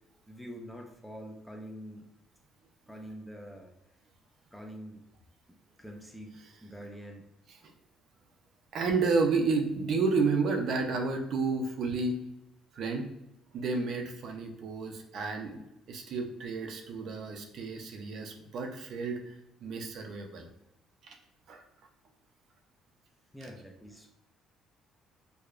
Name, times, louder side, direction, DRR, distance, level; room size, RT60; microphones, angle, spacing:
voice 1, 0.3-2.1 2.9-3.7 4.5-5.0 5.8-7.3 23.3-24.2, equal, 5° left, 2 dB, 0.4 m, -45 dB
voice 2, 8.7-12.2 12.7-13.1 13.5-15.6 15.9-20.5 21.1-21.2 21.5-21.6, right 4 dB, 55° right, 4 dB, 0.5 m, -31 dB
4.7 x 2.2 x 2.4 m, 0.87 s
cardioid pair, 150°, 0 cm